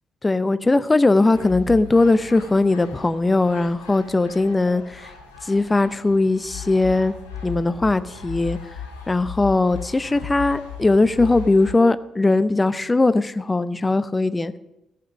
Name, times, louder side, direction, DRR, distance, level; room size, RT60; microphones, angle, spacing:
voice 1, 0.2-5.1 5.4-7.1 7.4-8.6 9.1-14.6, left 2 dB, 20° left, 13 dB, 0.6 m, -19 dB
sound 1, 1.3-11.7, left 7 dB, 85° left, 1.3 m, -37 dB
15.0 x 5.9 x 6.2 m, 0.93 s
figure-of-eight pair, 40°, 0 cm